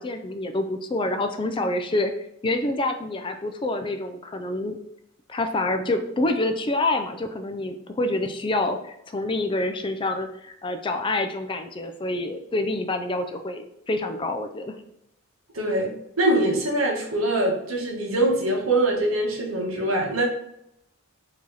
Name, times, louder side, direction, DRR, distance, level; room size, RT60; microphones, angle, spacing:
voice 1, 0.0-2.1 2.4-4.8 5.3-14.7, left 2 dB, 25° left, 7 dB, 0.4 m, -27 dB
voice 2, 15.5-20.2, right 1 dB, 70° right, -1 dB, 1.3 m, -23 dB
4.7 x 2.9 x 4.0 m, 0.77 s
head